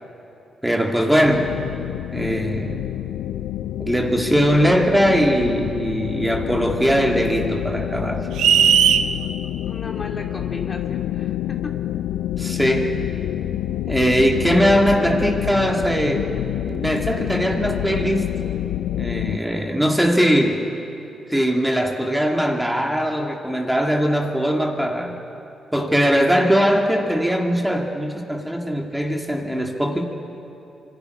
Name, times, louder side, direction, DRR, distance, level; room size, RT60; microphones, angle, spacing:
voice 1, 0.6-1.5 2.1-2.8 3.8-8.3 12.4-13.0 13.9-16.2 16.7-18.3 19.0-20.7 21.3-25.2 25.7-30.0, equal, 5° right, 2 dB, 2.3 m, -20 dB
sound 1, 1.2-19.4, left 12 dB, 80° left, 0.4 m, -28 dB
sound 2, 8.4-9.1, right 8 dB, 80° right, 0.6 m, -15 dB
voice 2, 9.2-11.4, left 3 dB, 40° left, 1 dB, 2.6 m, -36 dB
25.0 x 11.5 x 9.6 m, 2.8 s
supercardioid pair, 50°, 0 cm